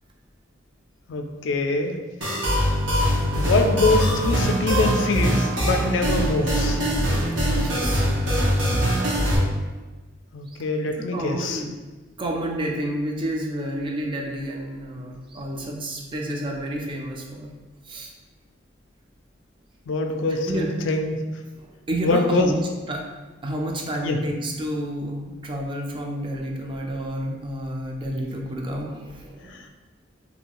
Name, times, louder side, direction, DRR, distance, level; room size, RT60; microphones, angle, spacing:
voice 1, 1.1-2.0 3.4-6.8 10.3-11.6 19.9-21.2 22.0-22.5 24.0-24.2 29.5-29.7, left 3 dB, 75° left, 4 dB, 0.3 m, -24 dB
sound 1, 2.2-9.4, equal, 80° right, 0.8 m, -22 dB
voice 2, 7.6-8.1 10.5-10.6 11.1-11.8 12.2-17.5 17.9-18.1 20.5-20.7 21.6-23.0 23.4-29.6, right 1 dB, 25° right, 0 dB, 0.3 m, -30 dB
2.7 x 2.3 x 2.9 m, 1.2 s
head